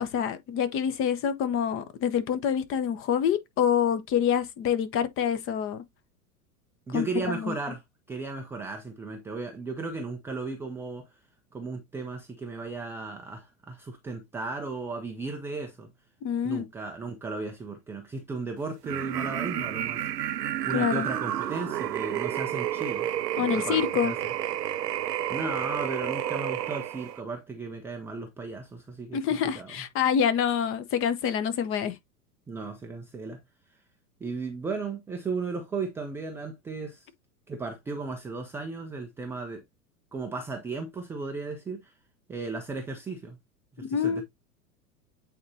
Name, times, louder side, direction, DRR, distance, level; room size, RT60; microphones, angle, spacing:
voice 1, 0.0-5.8 6.9-7.5 16.2-16.7 20.7-21.1 23.4-24.1 29.1-32.0 43.8-44.2, left 8 dB, 25° left, 0.9 m, -26 dB
voice 2, 6.9-7.8 8.1-11.1 11.5-15.9 16.4-20.1 20.7-23.1 23.4-24.2 25.3-29.2 29.5-29.8 32.5-33.4 34.2-37.1 37.5-39.6 40.1-41.9 42.3-43.4 43.8-44.2, right 3 dB, 5° right, 0.4 m, -35 dB
sound 1, 18.8-27.2, right 12 dB, 80° right, 0.6 m, -30 dB
8.5 x 4.3 x 2.7 m
figure-of-eight pair, 95°, 48 cm